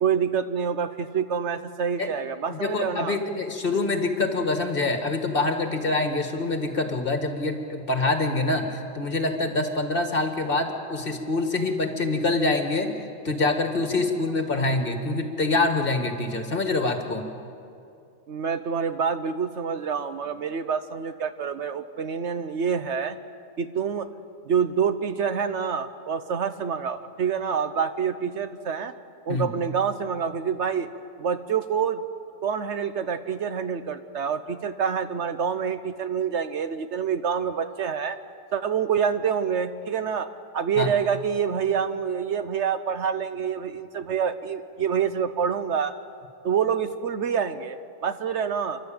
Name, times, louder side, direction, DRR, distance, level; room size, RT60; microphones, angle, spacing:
voice 1, 0.0-3.2 18.3-23.2 23.6-24.1 24.5-28.9 29.3-30.9 31.2-32.0 32.4-38.2 38.5-45.9 46.4-48.8, right 7 dB, 65° right, 10 dB, 1.0 m, -27 dB
voice 2, 2.5-12.9 13.2-17.3 29.3-29.5 40.8-40.9, left 2 dB, 45° left, 5 dB, 1.9 m, -25 dB
30.0 x 12.0 x 8.8 m, 2.5 s
omnidirectional pair, 1.4 m